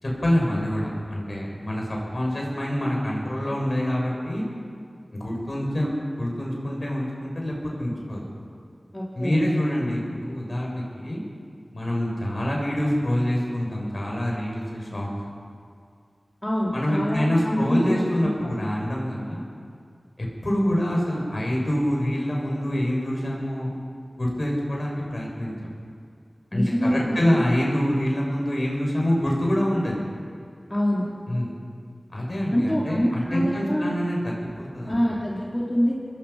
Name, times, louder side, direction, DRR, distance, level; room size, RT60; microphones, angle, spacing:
voice 1, 0.0-4.5 5.2-5.9 6.2-8.2 9.1-11.2 11.7-15.1 16.7-19.4 20.2-23.7 24.2-25.7 26.5-30.0 31.3-31.5 32.1-35.0, equal, 55° left, -2 dB, 7.3 m, -26 dB
voice 2, 8.9-9.4 16.4-18.5 26.5-27.4 30.7-31.1 32.5-34.0 34.9-36.0, equal, 20° left, -5 dB, 4.2 m, -25 dB
27.0 x 21.5 x 6.0 m, 2.2 s
wide cardioid pair, 55°, 0 cm